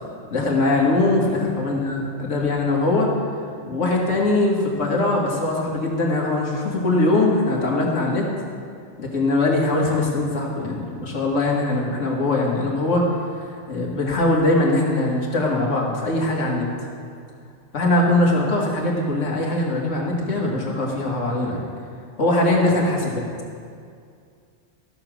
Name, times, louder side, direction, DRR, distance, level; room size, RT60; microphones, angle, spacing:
voice 1, 0.3-3.1 3.7-8.3 9.0-16.7 17.7-21.7 22.2-23.3, left 2 dB, 85° left, -2 dB, 2.0 m, -21 dB
13.5 x 7.0 x 6.1 m, 2.3 s
omnidirectional pair, 1.2 m